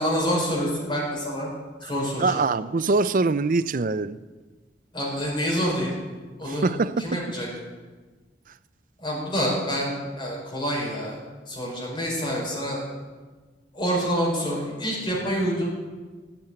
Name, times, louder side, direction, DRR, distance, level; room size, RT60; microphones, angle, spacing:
voice 1, 0.0-1.5 1.8-2.4 4.9-5.9 6.4-7.5 9.0-11.2 11.5-12.8 13.7-15.7, equal, 30° left, 5.1 m, -27 dB
voice 2, 2.2-4.2 6.5-7.2, right 3 dB, 50° right, 0.5 m, -24 dB
15.5 x 9.0 x 9.0 m
head